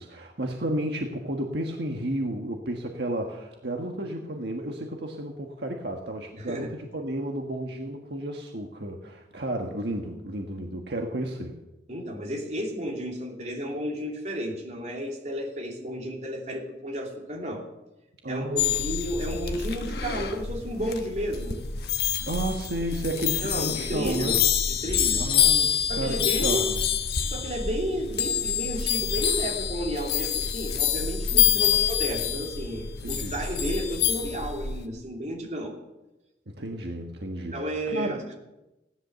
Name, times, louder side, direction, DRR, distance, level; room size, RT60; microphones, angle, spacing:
voice 1, 0.0-11.5 18.2-18.9 22.3-24.4 25.2-26.7 31.3-31.7 33.0-33.4 36.5-38.2, right 1 dB, 70° right, 2 dB, 1.5 m, -32 dB
voice 2, 6.4-6.7 11.9-17.6 18.3-21.6 23.4-25.3 25.9-26.7 27.2-35.7 37.5-38.3, equal, 40° right, -1 dB, 3.1 m, -32 dB
sound 1, 18.6-34.9, left 8 dB, 60° left, 1.2 m, -26 dB
16.0 x 11.5 x 6.9 m, 0.98 s
head